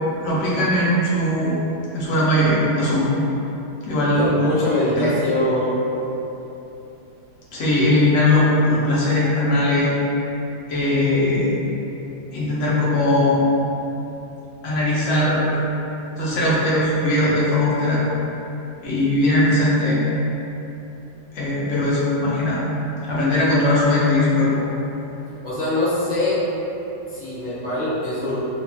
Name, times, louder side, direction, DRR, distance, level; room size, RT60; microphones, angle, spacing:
voice 1, 0.2-1.6 1.9-3.1 3.8-4.4 5.0-5.1 7.5-9.9 10.7-11.6 12.3-13.4 14.6-15.5 16.2-18.0 18.8-20.0 21.3-22.6 23.1-24.6, left 1 dB, 60° left, -7 dB, 0.8 m, -19 dB
voice 2, 4.2-5.8 25.4-26.4 27.1-28.4, left 1 dB, 15° left, -13 dB, 0.3 m, -23 dB
2.9 x 2.7 x 2.2 m, 3.0 s
omnidirectional pair, 1.8 m